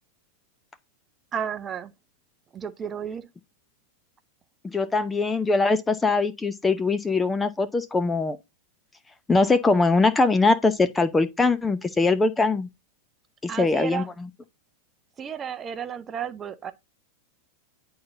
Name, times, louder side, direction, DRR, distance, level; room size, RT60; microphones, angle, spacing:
voice 1, 1.3-1.9 2.5-3.3 13.5-14.1 15.2-16.7, right 8 dB, 25° right, 0.7 m, -32 dB
voice 2, 4.7-8.4 9.3-12.7 13.6-14.0, left 3 dB, 10° left, 0.6 m, -22 dB
10.5 x 3.9 x 2.6 m
figure-of-eight pair, 90°, 0 cm